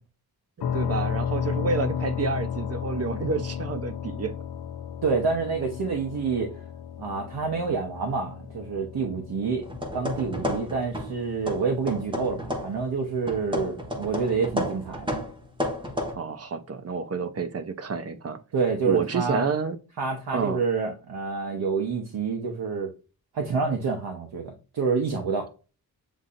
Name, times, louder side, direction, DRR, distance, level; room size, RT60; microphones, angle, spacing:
sound 1, 0.6-14.3, left 8 dB, 85° left, 0.5 m, -34 dB
voice 1, 0.6-4.3 16.1-18.4 18.9-19.8 20.3-20.6, right 4 dB, 40° right, 0.6 m, -29 dB
voice 2, 5.0-6.5 7.0-9.7 9.9-15.1 18.5-19.5 20.0-22.9 23.3-25.5, right 5 dB, 85° right, 0.9 m, -28 dB
sound 2, 9.6-11.2 11.5-12.8 13.3-16.1, left 1 dB, 15° right, 0.9 m, -32 dB
7.3 x 2.7 x 2.5 m
wide cardioid pair, 165°, 38 cm